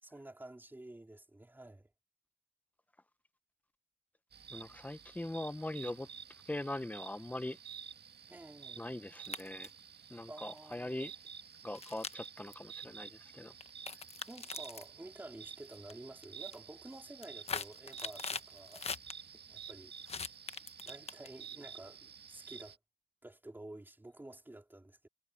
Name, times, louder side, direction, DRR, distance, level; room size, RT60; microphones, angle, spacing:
voice 1, 0.0-1.9 8.3-8.9 10.3-11.0 14.3-18.9 19.3-19.9 20.8-22.8 23.2-25.1, right 1 dB, 10° right, 4.2 m, -51 dB
sound 1, 4.3-22.8, right 7 dB, 55° right, 1.7 m, -51 dB
voice 2, 4.5-6.1 6.5-7.6 8.8-9.7 10.1-11.1 11.6-13.5, left 1 dB, 10° left, 0.8 m, -41 dB
sound 2, 9.1-9.8 10.6-10.7 11.7-12.5 13.6-14.9 15.6-15.9 16.2-16.6 17.0-19.1 20.1-21.5, left 5 dB, 30° left, 0.9 m, -42 dB
wide cardioid pair, 145°, 20 cm